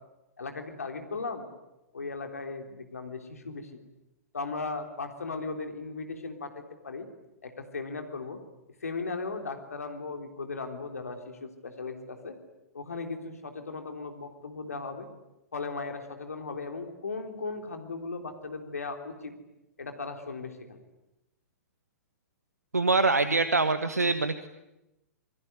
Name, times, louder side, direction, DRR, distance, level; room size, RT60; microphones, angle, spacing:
voice 1, 0.4-1.5 1.9-3.7 4.3-7.1 7.4-8.4 8.8-12.3 12.7-15.1 15.5-19.3 19.8-20.8, left 4 dB, 70° left, 5 dB, 3.6 m, -37 dB
voice 2, 22.7-24.5, right 3 dB, 80° right, 11 dB, 1.4 m, -24 dB
28.0 x 22.5 x 9.5 m, 0.94 s
figure-of-eight pair, 110°, 8 cm